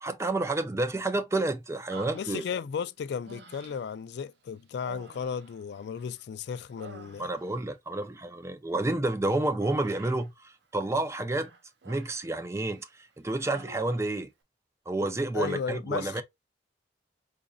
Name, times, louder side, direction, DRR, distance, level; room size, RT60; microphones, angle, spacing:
voice 1, 0.0-2.4 7.2-11.5 11.9-12.9 13.2-14.3 14.9-16.2, right 2 dB, 15° right, 0.4 m, -30 dB
Human voice, 1.9-2.8 3.2-4.0 4.8-6.2 6.5-7.6 9.6-10.3 11.3-12.3 12.7-12.9 13.3-14.1, right 3 dB, 65° right, 0.7 m, -48 dB
voice 2, 2.1-7.3 15.3-16.2, left 6 dB, 65° left, 0.3 m, -35 dB
4.9 x 2.5 x 2.3 m
head